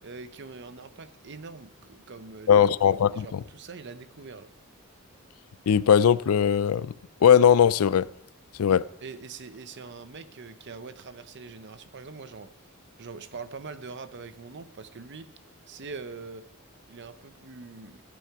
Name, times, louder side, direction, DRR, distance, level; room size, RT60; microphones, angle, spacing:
voice 1, 0.0-2.7 3.1-4.5 8.7-12.5 13.0-15.3 15.7-16.4 16.9-18.0, right 4 dB, 55° right, 0.7 m, -43 dB
voice 2, 2.5-3.4 5.7-6.9 7.2-8.1 8.6-8.8, left 8 dB, 80° left, 0.4 m, -19 dB
14.5 x 8.6 x 4.7 m
head